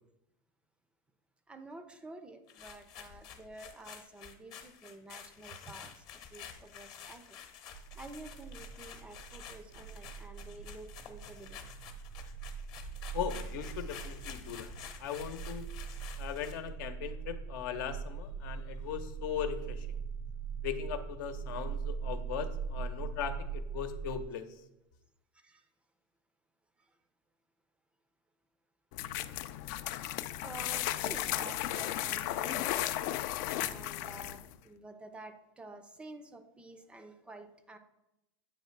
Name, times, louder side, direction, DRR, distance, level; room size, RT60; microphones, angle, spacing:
voice 1, 1.5-7.4 7.9-11.7 25.3-25.7 26.8-27.0 30.4-32.8 33.6-37.8, right 2 dB, 10° right, 9 dB, 0.4 m, -50 dB
sound 1, 2.5-16.7, left 8 dB, 40° left, 0.9 m, -50 dB
sound 2, 7.7-24.2, right 6 dB, 70° right, 0.5 m, -41 dB
voice 2, 13.1-14.7 15.0-15.7 16.2-20.0 20.6-24.4, left 9 dB, 80° left, 9 dB, 0.8 m, -39 dB
sound 3, 28.9-34.5, left 13 dB, 60° left, 0.4 m, -35 dB
8.4 x 3.2 x 5.8 m, 0.90 s
supercardioid pair, 160°, 11 cm